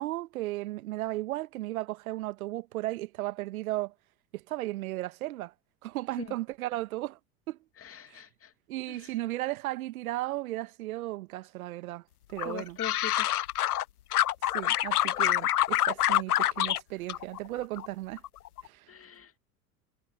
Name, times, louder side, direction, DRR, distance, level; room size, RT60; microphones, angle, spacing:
voice 1, 0.0-3.9 4.3-5.5 5.8-7.2 7.5-7.6 8.1-8.2 8.7-12.0 12.3-12.8 14.5-18.2 18.6-18.9, right 17 dB, 70° right, 1.7 m, -35 dB
voice 2, 7.8-8.5 8.9-9.1 12.4-13.3 18.9-19.4, left 9 dB, 30° left, 2.6 m, -42 dB
sound 1, 12.4-13.8 14.1-16.8 17.1-17.9 18.2-18.6, left 13 dB, 80° left, 0.7 m, -26 dB
figure-of-eight pair, 75°, 45 cm